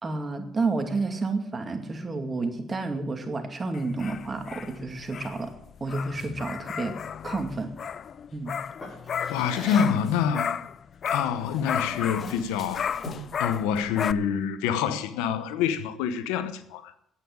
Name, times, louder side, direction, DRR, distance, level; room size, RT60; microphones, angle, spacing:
voice 1, 0.0-5.5 5.8-7.0 7.2-7.7 8.3-8.6, right 3 dB, 35° right, 2.3 m, -30 dB
sound 1, 3.7-10.8 11.0-14.1, left 7 dB, 55° left, 0.5 m, -33 dB
Drawer open or close, 8.8-10.1 11.2-11.5 11.9-13.4, left 2 dB, 30° left, 6.1 m, -41 dB
voice 2, 9.3-10.6 11.1-16.9, left 8 dB, 90° left, 0.9 m, -27 dB
9.9 x 8.8 x 8.7 m
supercardioid pair, 65°, 0 cm